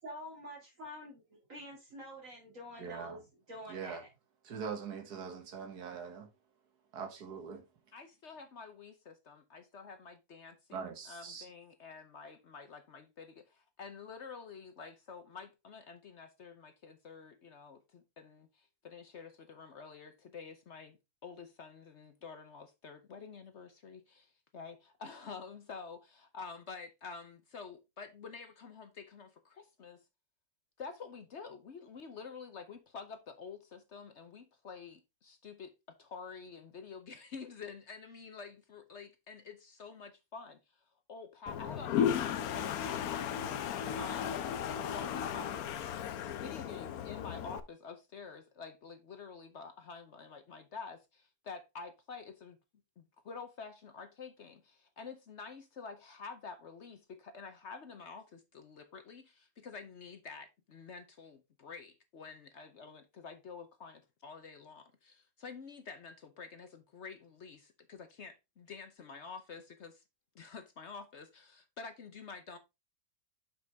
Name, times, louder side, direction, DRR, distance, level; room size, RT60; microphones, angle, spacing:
voice 1, 0.0-3.2 3.5-4.1, equal, 55° right, 2.5 m, -47 dB
voice 2, 2.8-3.2 3.7-4.0 4.4-6.3 6.9-7.6 10.7-11.5, right 6 dB, 85° right, 2.0 m, -42 dB
voice 3, 7.9-30.0 30.8-43.5 44.0-44.5 44.9-45.7 46.4-52.6 53.0-70.0 70.3-72.6, left 5 dB, 55° left, 1.0 m, -49 dB
Toilet flush, 41.5-47.6, left 9 dB, 70° left, 1.1 m, -35 dB
6.8 x 6.0 x 3.4 m
omnidirectional pair, 1.7 m